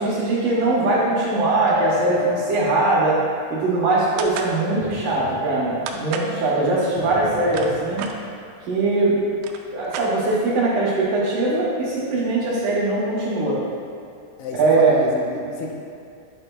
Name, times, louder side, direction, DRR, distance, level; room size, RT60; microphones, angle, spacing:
voice 1, 0.0-3.2 3.5-8.0 8.7-9.2 9.7-13.6 14.5-15.0, right 2 dB, 70° right, -8 dB, 2.0 m, -21 dB
sound 1, 1.7-3.7 4.8-6.1 7.0-8.3, left 6 dB, 65° left, 2.1 m, -33 dB
sound 2, 4.2-4.6 5.9-6.3 7.2-8.2 9.0-9.1 9.3-10.5, right 6 dB, 90° right, 2.3 m, -32 dB
voice 2, 14.4-15.7, left 3 dB, 90° left, -1 dB, 3.1 m, -30 dB
9.9 x 6.7 x 2.3 m, 2.5 s
omnidirectional pair, 5.3 m